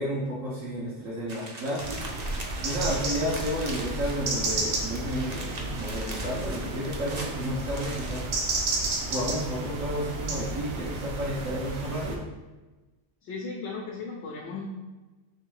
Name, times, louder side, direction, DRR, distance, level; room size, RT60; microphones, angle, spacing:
voice 1, 0.0-2.0 2.3-12.2, equal, 80° right, -7 dB, 1.4 m, -32 dB
sound 1, 1.3-4.5 4.7-8.2, right 2 dB, 40° right, 0.6 m, -41 dB
sound 2, 1.8-12.2, right 2 dB, 65° right, 1.0 m, -32 dB
voice 2, 3.1-3.7 13.2-14.7, left 4 dB, 65° left, -1 dB, 0.9 m, -37 dB
3.4 x 3.3 x 4.7 m, 1.2 s
omnidirectional pair, 1.4 m